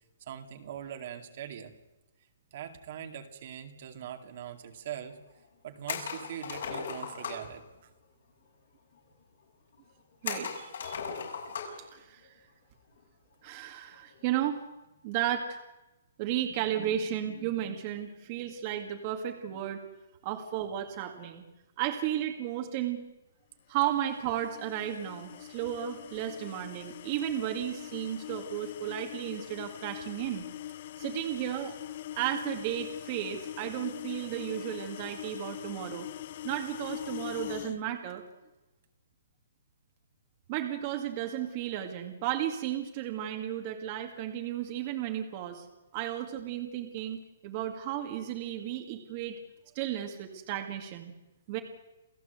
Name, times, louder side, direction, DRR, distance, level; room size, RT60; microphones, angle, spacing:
voice 1, 0.2-1.7 2.5-5.2 5.6-7.9, right 9 dB, 45° right, 6 dB, 2.3 m, -42 dB
sound 1, 5.9-7.5 10.2-11.9 12.2-12.3 13.9-14.2, left 6 dB, 65° left, 6.6 m, -37 dB
voice 2, 10.2-11.0 11.8-12.3 13.4-14.6 15.0-15.6 16.2-19.8 20.2-21.4 21.8-23.0 23.7-30.5 31.0-31.8 32.2-36.1 36.4-38.2 40.5-45.7 45.9-49.4 49.7-51.1 51.5-51.6, right 11 dB, 30° right, 4 dB, 2.0 m, -34 dB
sound 2, 23.9-37.8, left 12 dB, 40° left, 0.7 m, -42 dB
28.5 x 15.5 x 8.1 m, 1.0 s
hypercardioid pair, 165°, 0 cm